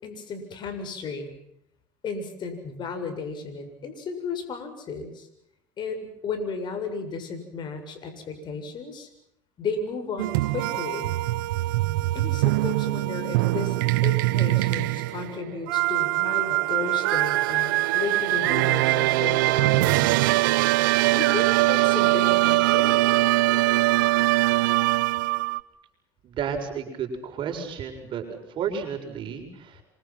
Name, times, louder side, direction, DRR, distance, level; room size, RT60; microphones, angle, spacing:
voice 1, 0.0-1.3 2.0-5.3 5.8-9.1 9.6-11.1 12.1-20.1 21.1-23.0, left 4 dB, 45° left, 8 dB, 7.5 m, -34 dB
sound 1, 10.2-25.6, right 19 dB, 80° right, 0.9 m, -22 dB
voice 2, 26.2-29.8, right 7 dB, 50° right, 5 dB, 7.2 m, -32 dB
28.5 x 25.5 x 6.1 m, 0.76 s
supercardioid pair, 90°, 11 cm